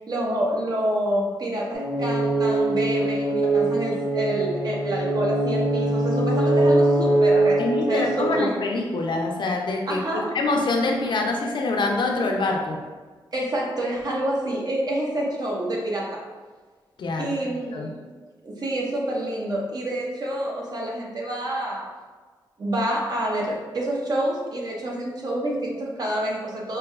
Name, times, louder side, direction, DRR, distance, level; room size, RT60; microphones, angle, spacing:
voice 1, 0.1-7.6 7.9-8.7 9.9-10.3 13.3-16.2 17.2-18.0 18.4-21.8 22.6-26.8, right 1 dB, 50° right, -3 dB, 0.9 m, -27 dB
sound 1, 1.7-8.3, right 2 dB, 75° right, 1.1 m, -22 dB
voice 2, 7.6-12.8 17.0-17.9, left 3 dB, 65° left, 1 dB, 0.6 m, -25 dB
4.8 x 2.8 x 2.4 m, 1.4 s
cardioid pair, 95°, 9 cm